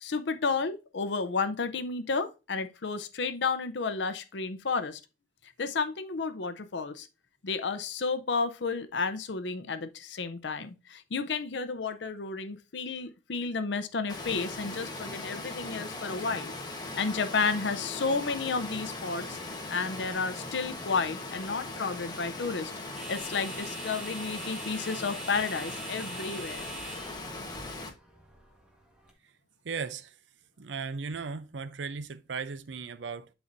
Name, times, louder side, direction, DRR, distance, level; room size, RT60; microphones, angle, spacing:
voice 1, 0.0-5.0 5.6-7.1 7.4-16.5 17.0-19.4 19.7-22.7 23.1-26.7, left 4 dB, 75° left, 0.6 m, -32 dB
Water, 14.1-27.9, left 2 dB, 25° left, 1.2 m, -39 dB
sound 1, 20.3-29.1, right 2 dB, 5° right, 1.5 m, -46 dB
voice 2, 29.6-30.2 30.6-33.3, right 5 dB, 85° right, 0.6 m, -36 dB
11.0 x 4.1 x 2.6 m
head